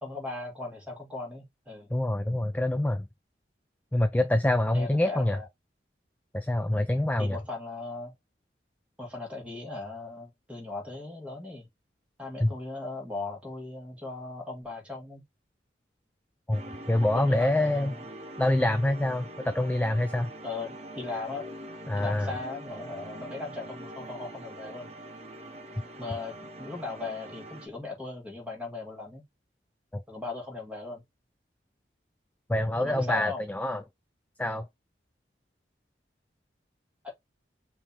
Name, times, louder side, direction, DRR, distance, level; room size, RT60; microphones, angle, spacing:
voice 1, 0.0-1.9 4.7-5.5 7.2-8.1 9.0-11.7 12.2-15.2 16.6-16.9 17.1-18.1 20.4-21.5 22.0-24.9 26.0-29.2 30.1-31.0 32.8-33.5 37.0-37.1, left 3 dB, 5° right, 1.9 m, -38 dB
voice 2, 1.9-3.1 3.9-5.4 6.3-7.4 12.4-12.5 16.5-17.9 18.4-20.3 21.9-22.3 29.9-30.0 32.5-33.8 34.4-34.7, left 1 dB, 10° left, 0.3 m, -26 dB
sound 1, 16.5-27.7, right 1 dB, 35° right, 0.9 m, -43 dB
5.2 x 2.9 x 3.5 m
head